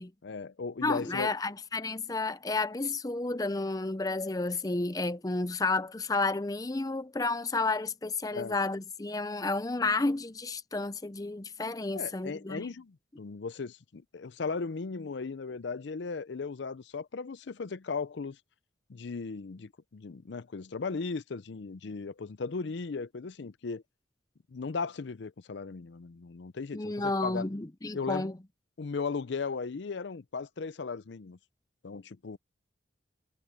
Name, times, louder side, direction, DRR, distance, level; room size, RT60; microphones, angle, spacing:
voice 1, 0.2-1.3 8.3-8.6 11.9-18.4 18.9-23.8 24.5-27.5 27.9-28.3 28.8-31.4 31.8-32.4, left 4 dB, 65° left, 0.5 m, -37 dB
voice 2, 0.8-12.7 26.7-28.4, left 3 dB, 20° left, 0.5 m, -31 dB
head